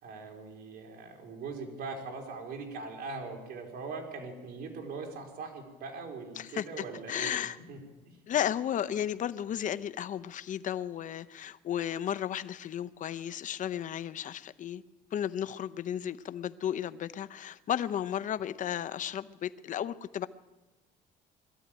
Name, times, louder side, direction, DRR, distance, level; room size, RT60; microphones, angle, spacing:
voice 1, 0.0-7.4 7.7-7.8 8.1-8.2, right 4 dB, 70° right, 4.5 m, -41 dB
voice 2, 7.1-7.6 8.3-14.8 15.1-20.3, left 10 dB, 50° left, 0.7 m, -34 dB
21.5 x 13.5 x 9.1 m
cardioid pair, 110°, 17 cm